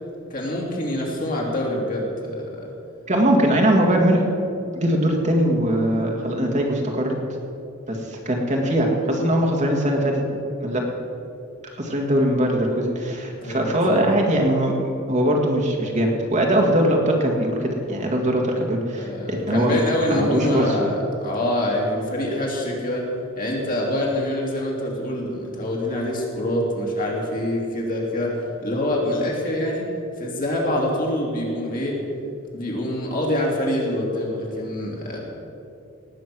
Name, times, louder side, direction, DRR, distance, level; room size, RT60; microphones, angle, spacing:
voice 1, 0.3-2.7 13.4-14.0 19.0-20.9 21.2-23.1 23.4-29.8 30.2-32.0 32.5-35.2, left 1 dB, 40° left, -2 dB, 3.0 m, -25 dB
voice 2, 3.1-4.2 4.7-7.2 7.9-10.2 10.6-10.8 11.8-14.8 15.1-19.8 20.1-20.8, right 1 dB, 35° right, 0 dB, 1.9 m, -21 dB
18.5 x 8.7 x 6.1 m, 2.7 s
head